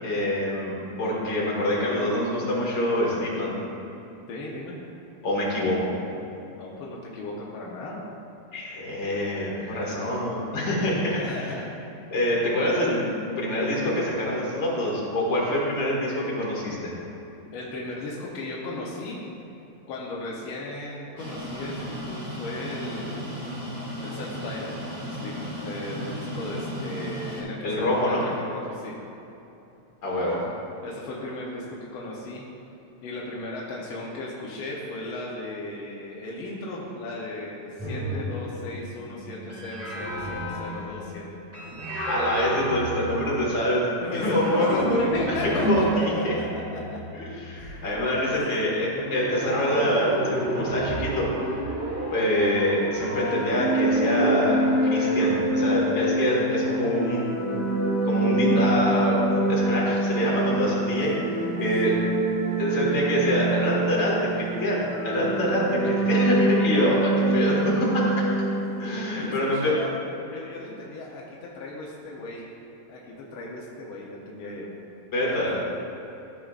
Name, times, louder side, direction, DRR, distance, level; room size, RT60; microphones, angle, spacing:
voice 1, 0.0-3.6 5.2-6.0 8.5-11.2 12.1-13.1 13.4-16.9 27.6-28.2 30.0-30.4 42.1-43.9 44.2-44.7 45.5-45.8 46.2-46.3 47.1-51.3 52.1-57.3 58.0-61.9 62.6-68.3 68.8-69.7 75.1-75.5, left 1 dB, 45° left, -5 dB, 2.2 m, -25 dB
voice 2, 4.3-4.8 6.5-8.0 9.7-10.1 11.1-11.6 17.5-19.2 19.9-23.4 24.0-29.0 30.2-30.5 30.8-32.5 33.0-41.2 44.0-47.0 47.6-47.8 48.2-48.8 61.8-62.0 69.1-69.9 70.2-72.5 72.9-74.7 75.2-75.6, left 2 dB, 75° left, -4 dB, 1.2 m, -35 dB
sound 1, 21.2-27.4, equal, 35° right, 2.1 m, -35 dB
sound 2, 37.8-43.7 44.2-48.1 48.9-55.5, right 1 dB, 10° right, 0.8 m, -31 dB
sound 3, 53.2-68.9, right 1 dB, 85° right, 0.6 m, -25 dB
13.5 x 6.7 x 2.4 m, 2.9 s
omnidirectional pair, 3.5 m